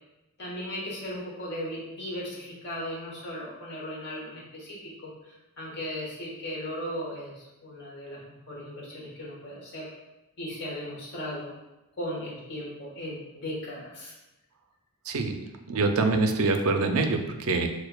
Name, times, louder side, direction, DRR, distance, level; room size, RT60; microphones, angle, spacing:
voice 1, 0.4-8.2 8.5-9.9 10.4-11.5 12.0-14.1, equal, 50° left, -4 dB, 1.1 m, -37 dB
voice 2, 15.1-15.4 15.7-17.7, right 3 dB, 70° right, 5 dB, 0.4 m, -25 dB
6.4 x 2.3 x 2.3 m, 1.0 s
head